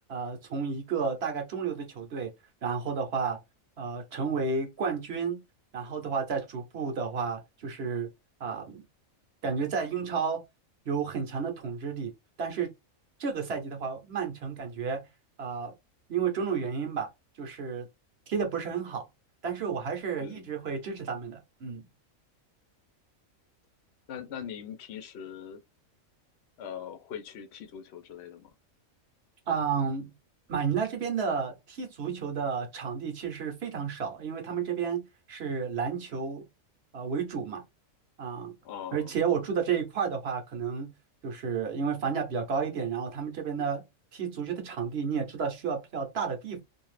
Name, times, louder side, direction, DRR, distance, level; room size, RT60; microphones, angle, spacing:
voice 1, 0.1-2.3 2.6-3.4 3.8-5.4 5.7-8.1 8.4-8.8 9.4-10.4 10.9-12.1 12.4-12.7 13.2-15.0 15.4-15.7 16.1-17.1 17.4-17.9 18.3-19.0 19.4-21.8 29.5-30.1 30.5-36.4 36.9-37.6 38.2-38.5 38.9-40.9 41.2-43.8 44.1-46.6, right 6 dB, 55° right, 0.9 m, -31 dB
voice 2, 20.2-20.5 24.1-25.6 26.6-28.5 38.6-39.1, left 8 dB, 60° left, 0.8 m, -41 dB
2.6 x 2.4 x 3.2 m
omnidirectional pair, 1.4 m